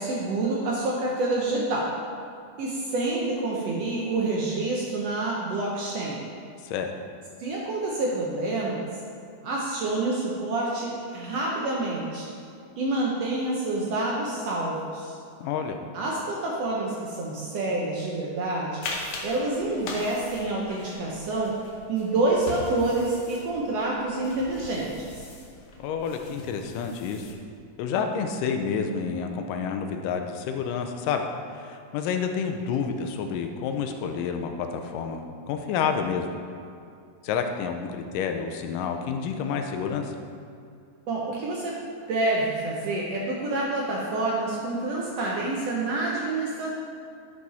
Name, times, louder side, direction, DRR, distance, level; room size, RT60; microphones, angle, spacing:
voice 1, 0.0-1.9 2.6-6.2 7.4-8.9 9.4-12.3 12.8-15.1 15.9-21.6 21.9-24.9 41.1-41.8 42.1-46.7, right 2 dB, 70° right, -3 dB, 1.6 m, -27 dB
voice 2, 15.4-15.8 25.8-27.4 27.8-31.2 31.6-36.3 37.2-40.2, left 6 dB, 90° left, 5 dB, 2.3 m, -29 dB
sound 1, 18.8-27.3, left 3 dB, 70° left, 1.7 m, -41 dB
10.5 x 4.8 x 4.1 m, 2.4 s
omnidirectional pair, 3.7 m